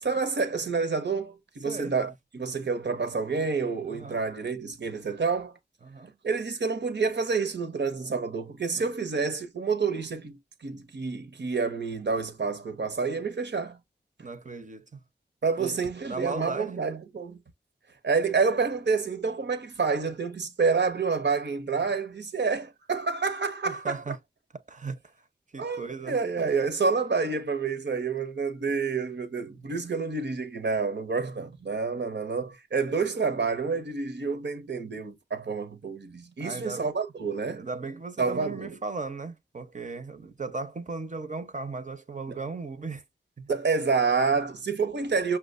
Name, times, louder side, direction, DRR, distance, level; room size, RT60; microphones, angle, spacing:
voice 1, 0.0-5.5 6.2-13.8 15.4-17.4 18.0-24.2 25.6-37.7 38.2-38.8 42.3-42.4 43.5-45.4, right 4 dB, 65° right, 0.9 m, -28 dB
voice 2, 3.9-4.2 5.8-6.1 8.7-8.9 14.2-15.0 15.6-15.8 16.0-17.0 23.7-24.2 24.7-25.0 25.5-26.2 29.5-29.6 36.4-36.9 37.5-43.0 43.4-43.5, right 4 dB, 40° right, 0.7 m, -37 dB
5.8 x 2.2 x 2.5 m
wide cardioid pair, 75°, 20 cm